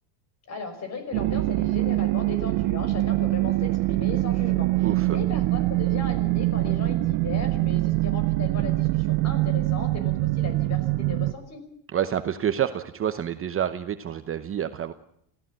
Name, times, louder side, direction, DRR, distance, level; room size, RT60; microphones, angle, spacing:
voice 1, 0.5-11.6, left 4 dB, 30° left, 9 dB, 5.6 m, -37 dB
sound 1, 1.1-11.3, right 20 dB, 65° right, 0.8 m, -24 dB
voice 2, 4.8-5.2 11.9-14.9, right 10 dB, 25° right, 9 dB, 0.9 m, -28 dB
26.5 x 16.0 x 7.6 m, 0.73 s
cardioid pair, 145°, 49 cm